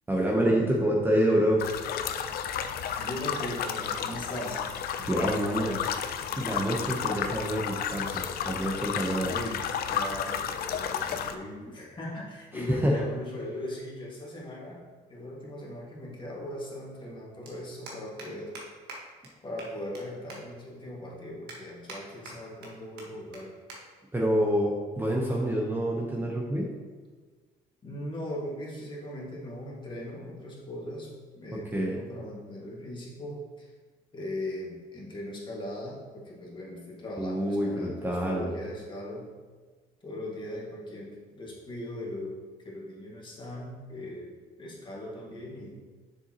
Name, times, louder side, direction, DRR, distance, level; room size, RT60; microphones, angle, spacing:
voice 1, 0.1-1.6 5.0-6.1 6.4-9.3 12.5-13.0 24.1-26.7 31.5-32.0 37.2-38.5, equal, 10° right, -3 dB, 0.9 m, -27 dB
sound 1, 1.6-11.3, left 8 dB, 65° left, 0.5 m, -32 dB
voice 2, 3.0-4.7 9.2-14.8 15.1-18.6 19.4-23.6 27.8-33.7 34.1-39.3 40.0-45.8, left 1 dB, 30° left, -3 dB, 2.0 m, -39 dB
sound 2, 17.4-17.5 17.9-18.3 18.5-18.6 18.9-19.0 19.2-19.3 19.6-20.0 20.3-20.4 20.9-21.0 21.5-22.0 22.2-22.7 23.0-23.1 23.3-23.4 23.7-23.8 24.1-24.3 25.1-25.4, right 3 dB, 75° right, 1.5 m, -43 dB
7.1 x 6.6 x 3.0 m, 1.4 s
cardioid pair, 110°, 17 cm